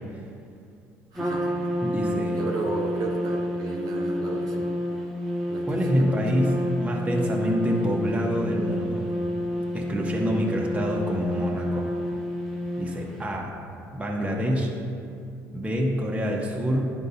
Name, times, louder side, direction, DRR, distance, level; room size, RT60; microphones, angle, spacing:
Trumpet, 1.1-13.3, equal, ahead, 1.2 m, -29 dB
voice 1, 1.1-1.6 2.3-4.6 5.5-6.1, right 3 dB, 60° right, -2 dB, 1.1 m, -33 dB
voice 2, 1.8-2.5 5.7-9.1 9.7-11.9 12.8-13.5 13.9-14.7 15.5-16.9, equal, 15° right, -2 dB, 1.3 m, -26 dB
10.5 x 4.6 x 2.8 m, 2.5 s
hypercardioid pair, 65°, 7 cm